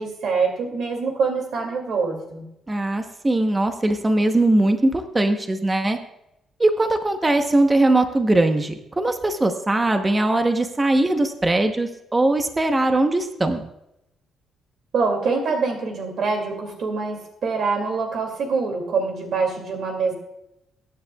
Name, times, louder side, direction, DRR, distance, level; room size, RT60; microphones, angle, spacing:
voice 1, 0.0-2.4 14.9-20.1, right 4 dB, 55° right, 3 dB, 2.3 m, -25 dB
voice 2, 2.7-6.0 6.6-13.7, right 2 dB, 15° right, 6 dB, 0.8 m, -20 dB
22.0 x 9.9 x 2.3 m, 0.84 s
cardioid pair, 170°, 0 cm